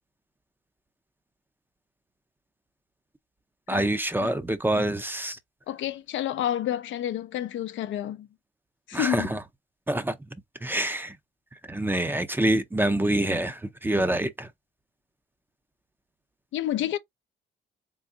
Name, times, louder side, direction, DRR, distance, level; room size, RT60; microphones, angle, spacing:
voice 1, 3.7-5.4 8.9-9.4 9.9-10.2 10.6-11.2 11.7-14.5, right 1 dB, 10° right, 0.6 m, -26 dB
voice 2, 5.7-8.3 8.9-9.3 16.5-17.0, left 11 dB, 75° left, 0.5 m, -29 dB
3.7 x 2.5 x 2.6 m
cardioid pair, 90°, 20 cm